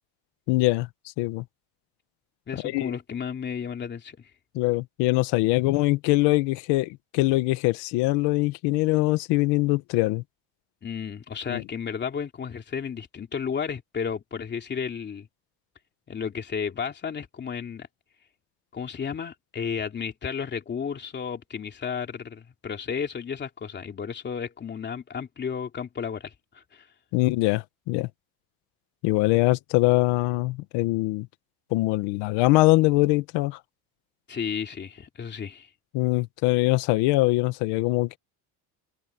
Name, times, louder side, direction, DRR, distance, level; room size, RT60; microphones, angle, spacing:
voice 1, 0.5-0.9 1.2-1.4 2.6-2.9 4.5-10.2 11.5-11.6 27.1-28.1 29.0-31.3 31.7-33.6 35.9-38.2, left 20 dB, 85° left, 1.6 m, -23 dB
voice 2, 2.5-4.3 10.8-15.3 16.1-17.9 18.7-26.9 34.3-35.7, left 6 dB, 25° left, 3.0 m, -33 dB
cardioid pair, 160°, 40 cm